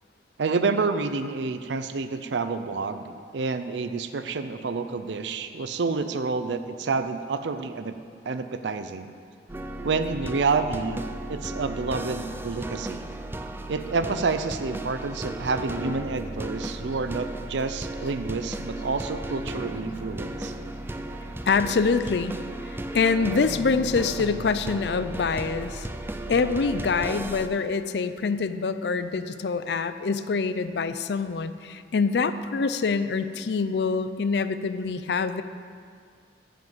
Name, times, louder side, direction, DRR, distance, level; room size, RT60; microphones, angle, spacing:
voice 1, 0.4-8.0 8.3-9.1 9.8-11.0 11.3-13.1 13.7-20.5, right 4 dB, 80° right, 9 dB, 0.5 m, -28 dB
sound 1, 9.5-27.5, right 1 dB, 10° right, 0.4 m, -35 dB
voice 2, 21.5-22.4 22.7-25.9 26.3-35.4, left 4 dB, 65° left, 12 dB, 0.5 m, -25 dB
12.5 x 5.2 x 7.8 m, 2.2 s
head